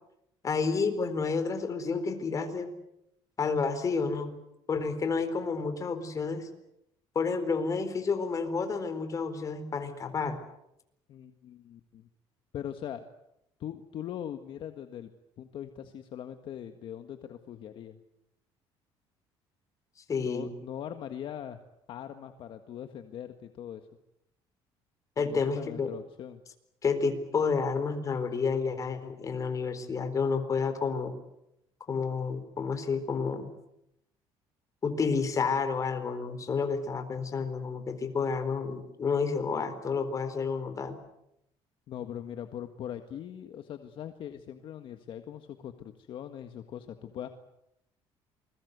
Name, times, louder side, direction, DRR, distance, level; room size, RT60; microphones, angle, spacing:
voice 1, 0.4-2.7 3.4-4.3 4.7-6.5 7.1-10.4 20.1-20.5 25.2-25.9 26.8-31.2 31.9-33.5 34.8-41.0, left 5 dB, 35° left, 9 dB, 4.1 m, -30 dB
voice 2, 11.1-12.1 12.5-13.0 13.6-15.1 15.4-18.0 20.2-21.6 21.9-23.9 25.2-26.4 41.9-47.3, left 10 dB, 55° left, 7 dB, 1.7 m, -41 dB
28.0 x 21.5 x 8.2 m, 0.81 s
cardioid pair, 130°, 10 cm